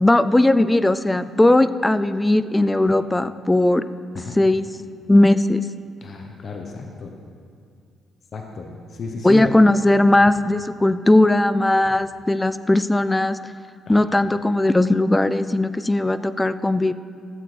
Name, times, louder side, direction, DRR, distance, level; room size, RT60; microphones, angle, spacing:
voice 1, 0.0-3.8 4.3-4.7 5.1-5.7 9.2-13.4 13.9-16.9, left 1 dB, 15° left, 13 dB, 0.3 m, -18 dB
voice 2, 6.0-7.1 8.3-9.5 13.9-14.0, left 4 dB, 55° left, 2 dB, 0.9 m, -33 dB
13.5 x 7.8 x 3.3 m, 2.4 s
cardioid pair, 90°, 0 cm